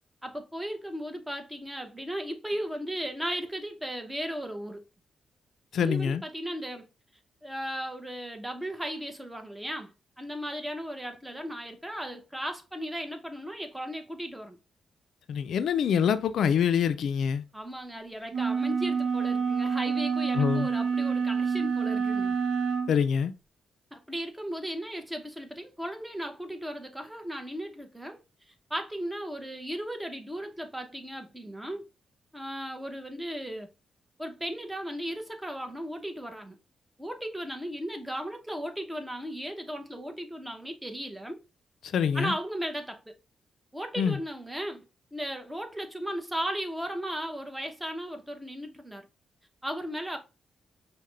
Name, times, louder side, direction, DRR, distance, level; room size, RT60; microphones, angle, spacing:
voice 1, 0.2-4.8 5.8-6.9 7.4-14.6 17.5-22.4 23.9-28.2 28.5-31.9 32.3-33.7 34.2-36.6 37.0-41.4 42.1-43.1 43.7-44.8 45.1-49.1 49.6-50.2, equal, 10° right, 0.8 m, -36 dB
voice 2, 5.7-6.2 15.3-17.4 20.3-20.7 22.9-23.3 41.8-42.3 44.0-44.2, left 7 dB, 75° left, 0.3 m, -25 dB
sound 1, 18.3-22.9, right 6 dB, 65° right, 0.6 m, -27 dB
5.5 x 2.1 x 3.1 m
cardioid pair, 85°, 0 cm